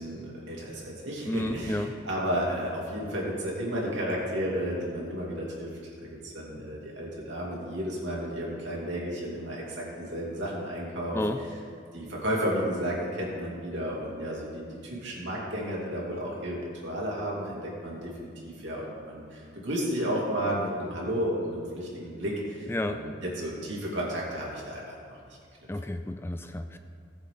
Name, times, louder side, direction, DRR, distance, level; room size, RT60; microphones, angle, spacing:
voice 1, 0.0-11.5 11.9-25.2, equal, 75° right, -4 dB, 2.9 m, -32 dB
voice 2, 1.3-1.9 11.1-11.4 22.7-23.0 25.7-26.8, left 1 dB, 10° left, 7 dB, 0.3 m, -31 dB
18.5 x 7.2 x 3.9 m, 2.3 s
head